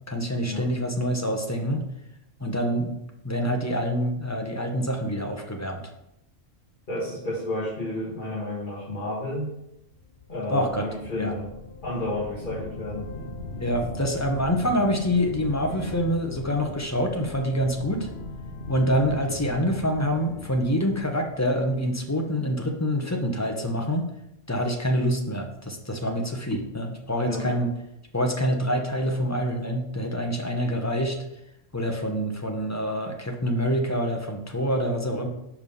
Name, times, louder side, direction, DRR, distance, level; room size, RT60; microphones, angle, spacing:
voice 1, 0.1-1.8 2.4-3.0 3.2-5.8 10.5-10.9 11.2-11.3 13.6-18.1 18.7-24.1 24.5-27.7 28.1-31.2 31.7-35.3, equal, 15° left, 3 dB, 0.6 m, -26 dB
voice 2, 6.9-9.5 10.3-11.5 11.8-13.1 27.2-27.5, left 1 dB, 40° left, -7 dB, 1.8 m, -31 dB
sound 1, 10.0-22.0, left 2 dB, 55° left, 0.9 m, -39 dB
5.5 x 5.0 x 5.4 m, 0.83 s
omnidirectional pair, 1.3 m